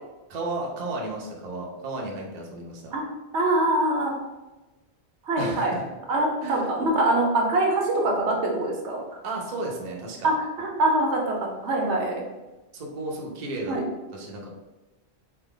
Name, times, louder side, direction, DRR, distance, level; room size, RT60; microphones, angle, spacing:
voice 1, 0.3-2.9 5.4-5.9 6.4-6.7 9.2-10.3 12.7-13.8 14.1-14.5, right 2 dB, 45° right, -1 dB, 0.6 m, -33 dB
voice 2, 3.3-4.1 5.2-5.7 6.1-9.2 10.2-12.2 13.7-13.8, right 1 dB, 80° right, 0 dB, 1.0 m, -24 dB
3.3 x 2.1 x 3.7 m, 1.1 s
omnidirectional pair, 1.1 m